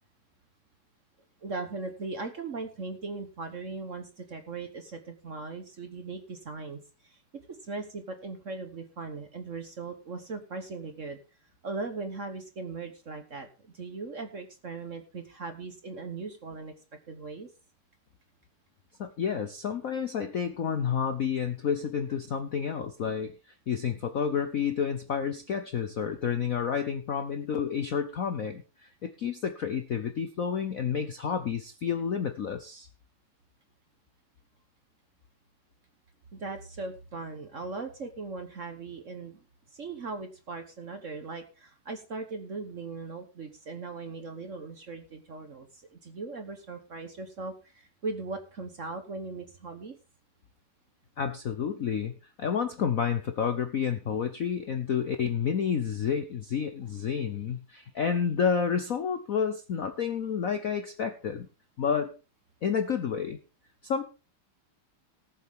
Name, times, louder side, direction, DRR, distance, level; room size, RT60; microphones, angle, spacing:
voice 1, 1.4-7.2 7.6-11.2 11.6-16.7 17.1-17.5 36.3-39.4 39.7-50.0, right 3 dB, 45° right, 7 dB, 1.2 m, -39 dB
voice 2, 19.0-23.3 23.7-32.9 51.2-61.5 61.8-62.1 62.6-63.4 63.8-64.0, left 7 dB, 60° left, 8 dB, 0.9 m, -30 dB
18.5 x 7.4 x 3.6 m, 0.32 s
omnidirectional pair, 2.4 m